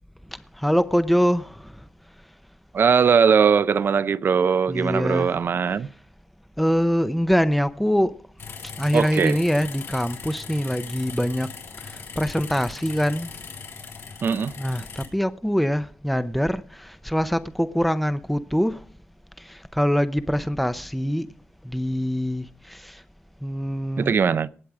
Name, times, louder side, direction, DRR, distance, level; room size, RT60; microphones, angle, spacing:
voice 1, 0.3-1.9 4.7-5.4 5.8-5.9 6.6-8.2 8.8-11.5 11.8-13.4 14.6-18.9 19.4-21.3 21.6-23.0 23.4-24.2, equal, ahead, 0.6 m, -24 dB
voice 2, 2.7-5.9 8.9-9.4 14.2-14.5 24.0-24.5, right 6 dB, 55° right, 0.6 m, -20 dB
sound 1, 8.4-15.1, left 5 dB, 70° left, 3.8 m, -39 dB
18.5 x 7.7 x 4.8 m
cardioid pair, 105°, 4 cm